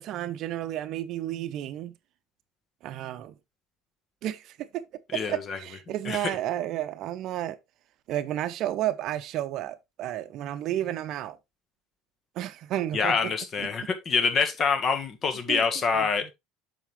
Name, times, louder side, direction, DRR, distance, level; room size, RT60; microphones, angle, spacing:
voice 1, 0.0-1.9 2.8-3.4 4.2-4.8 5.1-7.6 8.1-11.4 12.4-13.3 13.6-13.9 15.5-15.6 15.9-16.3, right 12 dB, 55° right, 0.7 m, -32 dB
voice 2, 5.1-5.6 6.0-6.2 12.9-16.3, left 5 dB, 40° left, 1.4 m, -26 dB
7.3 x 5.9 x 3.3 m
figure-of-eight pair, 65°, 0 cm